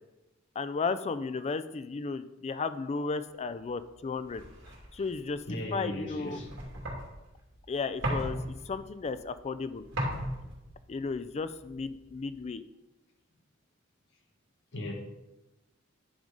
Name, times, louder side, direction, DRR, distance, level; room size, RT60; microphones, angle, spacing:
voice 1, 0.6-4.4 4.9-5.4 5.7-6.4 7.7-9.8 10.9-12.6, left 4 dB, 30° left, 0.4 m, -34 dB
sound 1, 3.5-12.4, equal, 70° right, 2.7 m, -39 dB
voice 2, 5.5-6.5 14.7-14.9, left 1 dB, 60° left, 1.5 m, -37 dB
10.5 x 3.9 x 5.1 m
head